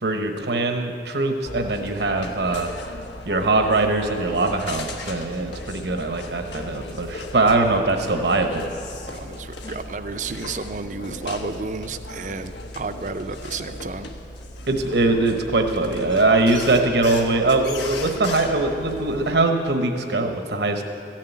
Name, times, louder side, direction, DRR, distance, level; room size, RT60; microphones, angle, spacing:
voice 1, 0.0-2.7 3.3-8.6 14.7-20.8, right 2 dB, 75° right, 5 dB, 1.0 m, -22 dB
sound 1, 1.4-19.3, left 2 dB, 85° left, 1.3 m, -37 dB
voice 2, 9.0-14.1, right 4 dB, 45° right, 10 dB, 0.5 m, -32 dB
14.5 x 7.5 x 9.2 m, 2.5 s
head